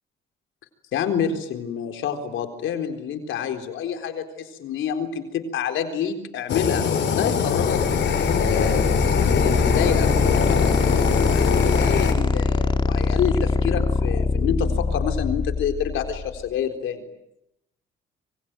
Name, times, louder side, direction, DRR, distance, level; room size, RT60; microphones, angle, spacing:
voice 1, 0.9-6.9 7.1-8.8 9.3-17.1, left 7 dB, 80° left, 6 dB, 4.0 m, -28 dB
Fire, 6.5-12.1, left 6 dB, 65° left, 5.5 m, -22 dB
sound 1, 7.6-16.5, left 4 dB, 25° left, 2.9 m, -23 dB
27.0 x 23.5 x 9.1 m, 0.84 s
cardioid pair, 90°, 20 cm